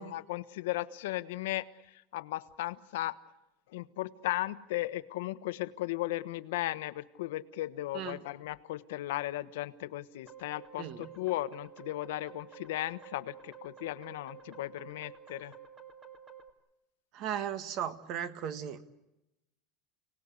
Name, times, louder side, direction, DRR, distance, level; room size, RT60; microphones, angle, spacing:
voice 1, 0.0-3.2 3.7-15.5, left 16 dB, 85° left, 13 dB, 1.2 m, -36 dB
sound 1, 10.3-16.5, right 7 dB, 20° right, 1.8 m, -51 dB
voice 2, 10.8-11.1 17.1-18.9, right 9 dB, 35° right, 13 dB, 1.4 m, -37 dB
30.0 x 19.0 x 8.2 m, 0.93 s
supercardioid pair, 180°, 0 cm